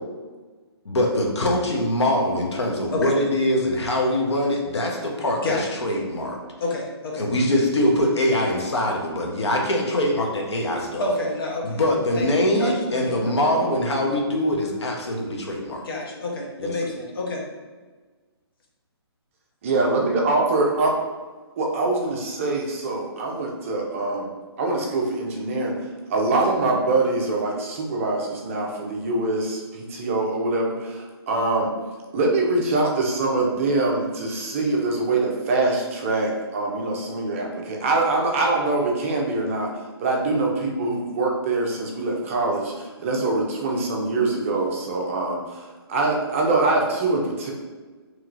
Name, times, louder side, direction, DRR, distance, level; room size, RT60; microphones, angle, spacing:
voice 1, 0.9-6.4 7.2-11.1 11.6-15.8 16.6-16.7, left 1 dB, 85° left, 0 dB, 0.8 m, -23 dB
voice 2, 6.6-7.3 11.0-11.8 12.1-12.3 12.6-13.4 15.8-17.4, left 2 dB, 60° left, -1 dB, 0.9 m, -28 dB
voice 3, 19.6-20.9 21.6-24.3 24.6-31.7 32.1-39.7 40.0-47.5, right 2 dB, 30° right, -1 dB, 0.5 m, -24 dB
2.9 x 2.9 x 2.4 m, 1.4 s
hypercardioid pair, 150°, 14 cm